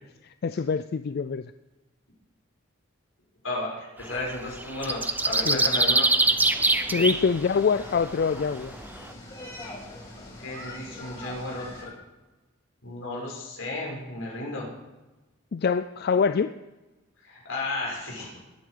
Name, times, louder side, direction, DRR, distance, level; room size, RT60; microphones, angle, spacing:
voice 1, 0.4-1.5 5.5-5.6 6.9-8.8 15.5-16.6, left 5 dB, 50° left, 12 dB, 0.4 m, -25 dB
voice 2, 3.4-6.1 10.4-11.9 12.8-14.7 17.2-18.4, left 2 dB, 80° left, -3 dB, 6.2 m, -33 dB
sound 1, 4.1-4.3 4.6-7.3 7.7-7.8, right 2 dB, 10° right, 0.5 m, -23 dB
sound 2, 6.2-11.8, left 1 dB, 20° left, 4.6 m, -43 dB
19.5 x 9.3 x 5.0 m, 1.1 s
head